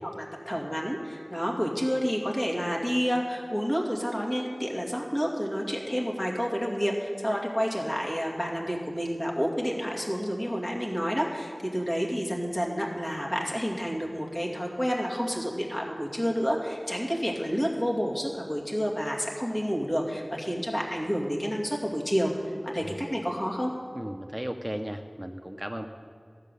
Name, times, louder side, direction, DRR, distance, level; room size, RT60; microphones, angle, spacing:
voice 1, 0.0-23.7, equal, 40° left, -2 dB, 2.3 m, -29 dB
voice 2, 23.9-25.9, equal, 10° right, 5 dB, 0.6 m, -35 dB
13.5 x 7.4 x 6.8 m, 2.4 s
wide cardioid pair, 50°, 0 cm